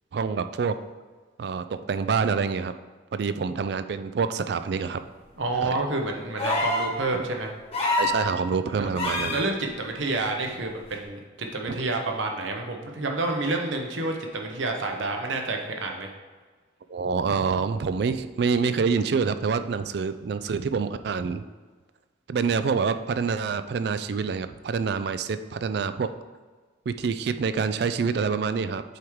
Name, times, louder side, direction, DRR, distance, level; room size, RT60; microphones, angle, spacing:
voice 1, 0.1-0.8 1.4-2.7 3.1-5.0 5.6-5.7 8.0-9.4 11.7-11.8 16.9-21.5 22.3-26.1 26.9-28.8, right 5 dB, 55° right, 11 dB, 0.3 m, -26 dB
voice 2, 5.4-7.5 8.8-8.9 9.3-16.1, right 2 dB, 80° right, 2 dB, 0.9 m, -29 dB
sound 1, 6.4-6.9 7.7-8.2 9.0-9.4 10.9-11.0, left 2 dB, 30° left, 1.3 m, -25 dB
7.9 x 4.7 x 3.6 m, 1.4 s
head